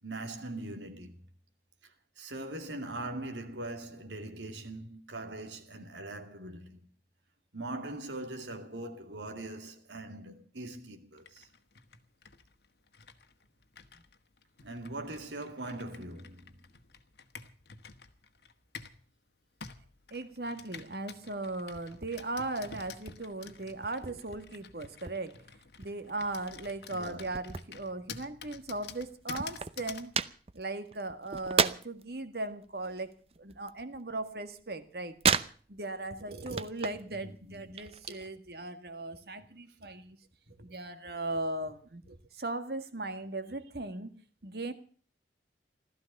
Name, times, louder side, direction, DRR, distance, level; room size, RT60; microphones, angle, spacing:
voice 1, 0.0-1.2 2.2-6.8 7.5-11.5 13.9-14.0 14.6-16.7 26.9-27.3 37.4-37.8, right 2 dB, 85° right, 2.5 m, -41 dB
Computer keyboard, 11.2-19.0 19.6-30.1, left 6 dB, 70° left, 1.4 m, -50 dB
voice 2, 20.1-25.4 25.8-30.1 30.5-35.1 35.7-40.2 40.5-44.1 44.4-44.7, right 2 dB, 60° right, 1.8 m, -38 dB
sound 1, 21.6-22.1 22.4-24.1 24.5-25.5 25.8-28.4 28.7-28.8 29.0-32.1 32.5-34.4 34.6-36.0 36.3-37.1 37.4-38.3, right 6 dB, 35° right, 0.7 m, -33 dB
15.5 x 13.5 x 6.7 m
head